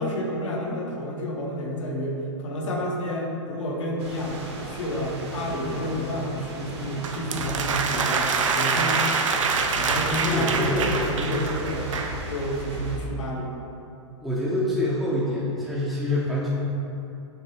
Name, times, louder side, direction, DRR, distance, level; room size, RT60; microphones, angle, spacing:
voice 1, 0.0-9.2 9.7-11.9 12.3-13.6, equal, 80° left, -1 dB, 0.9 m, -30 dB
sound 1, 4.0-13.0, right 2 dB, 60° right, 0.9 m, -36 dB
sound 2, 7.0-12.2, right 5 dB, 90° right, 0.4 m, -25 dB
voice 2, 10.3-11.1 14.2-16.5, left 1 dB, ahead, -9 dB, 0.4 m, -26 dB
6.5 x 2.2 x 3.2 m, 2.8 s
hypercardioid pair, 125°, 16 cm